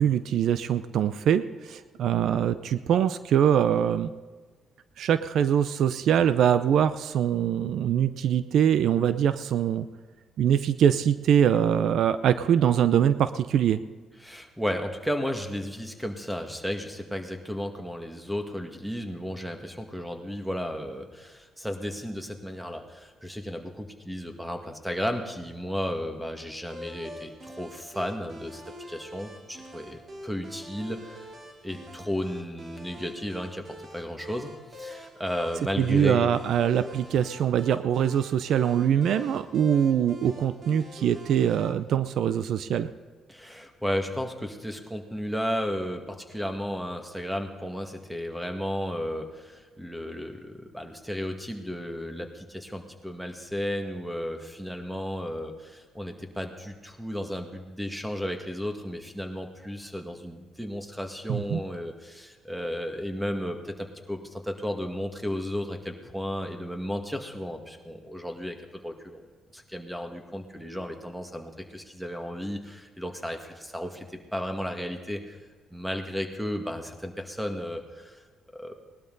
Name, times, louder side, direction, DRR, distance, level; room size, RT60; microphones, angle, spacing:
voice 1, 0.0-4.1 5.0-9.9 10.4-13.8 35.8-42.9 61.3-61.6, right 9 dB, 70° right, 13 dB, 0.6 m, -23 dB
voice 2, 14.2-28.6 28.9-31.3 31.6-36.4 43.3-69.3 69.5-75.4 75.7-78.2 78.5-78.8, equal, 5° right, 5 dB, 2.0 m, -34 dB
sound 1, 26.7-41.7, equal, 50° right, 3.2 m, -44 dB
19.0 x 12.0 x 4.0 m, 1.4 s
cardioid pair, 90°, 0 cm